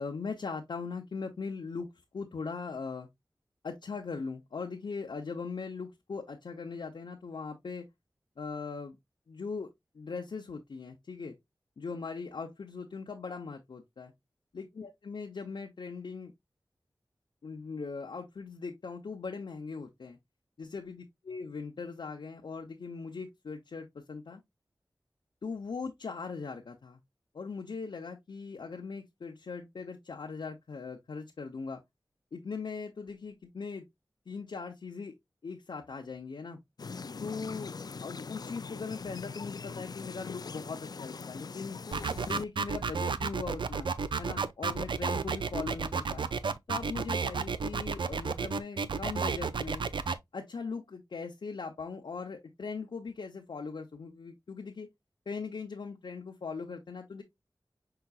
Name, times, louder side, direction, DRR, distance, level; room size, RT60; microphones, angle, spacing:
voice 1, 0.0-3.1 3.6-7.8 8.4-9.0 9.3-9.7 9.9-11.4 11.8-14.1 14.5-16.3 17.4-20.2 20.6-24.4 25.4-27.0 27.3-31.8 32.3-33.8 34.3-35.1 35.4-36.6 37.2-37.7 38.0-41.8 42.3-43.9 44.2-46.3 46.7-49.8 50.3-54.9 55.3-57.2, left 4 dB, 85° left, 0.8 m, -40 dB
sound 1, 36.8-42.4, left 5 dB, 55° left, 0.4 m, -42 dB
sound 2, 41.9-50.1, right 5 dB, 80° right, 0.4 m, -31 dB
5.7 x 3.8 x 2.3 m
wide cardioid pair, 80°, 8 cm